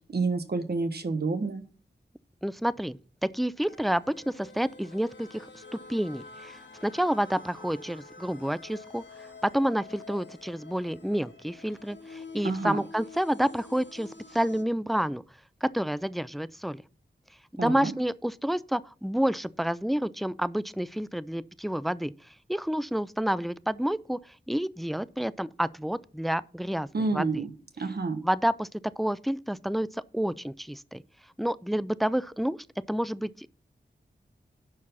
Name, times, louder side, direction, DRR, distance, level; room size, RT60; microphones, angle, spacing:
voice 1, 0.1-1.6 12.4-12.8 17.6-17.9 26.9-27.5 27.8-28.2, right 3 dB, 60° right, 1.3 m, -29 dB
voice 2, 2.4-5.6 5.9-15.2 15.6-16.8 17.5-22.1 22.5-27.4 28.2-28.7 29.0-31.0 31.4-32.6 32.9-33.5, equal, ahead, 0.4 m, -29 dB
sound 1, 3.6-14.6, left 3 dB, 80° left, 2.1 m, -48 dB
11.0 x 4.7 x 5.6 m
wide cardioid pair, 80°, 19 cm